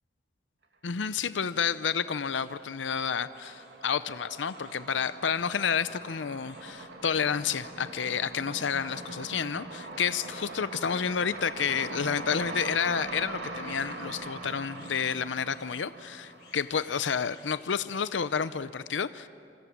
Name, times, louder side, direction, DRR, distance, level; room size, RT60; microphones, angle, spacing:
voice 1, 0.8-19.3, left 7 dB, 85° left, 14 dB, 0.6 m, -30 dB
sound 1, 0.9-18.7, left 5 dB, 65° left, 7.8 m, -61 dB
sound 2, 1.1-1.8 2.1-17.3, right 2 dB, 65° right, 2.5 m, -42 dB
27.0 x 25.5 x 7.4 m, 2.5 s
head